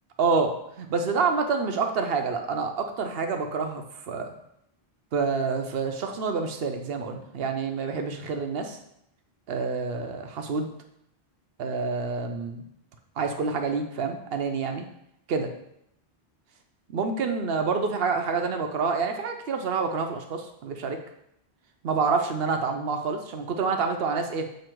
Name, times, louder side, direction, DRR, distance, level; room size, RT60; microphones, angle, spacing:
voice 1, 0.2-4.3 5.1-8.8 9.5-10.7 11.6-12.6 13.2-14.9 15.3-15.5 16.9-21.0 21.8-24.5, right 4 dB, 70° right, 5 dB, 0.9 m, -27 dB
7.5 x 2.9 x 4.4 m, 0.77 s
omnidirectional pair, 1.0 m